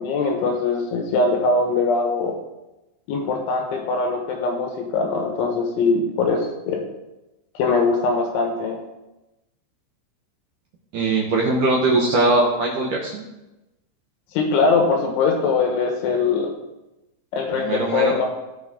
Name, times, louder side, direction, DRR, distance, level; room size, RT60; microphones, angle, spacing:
voice 1, 0.0-2.3 3.1-6.8 7.6-8.8 14.3-16.5 17.3-18.3, left 4 dB, 75° left, 2 dB, 3.6 m, -21 dB
voice 2, 10.9-13.2 17.5-18.1, right 2 dB, 75° right, -2 dB, 1.9 m, -20 dB
18.0 x 6.2 x 3.8 m, 0.98 s
omnidirectional pair, 5.7 m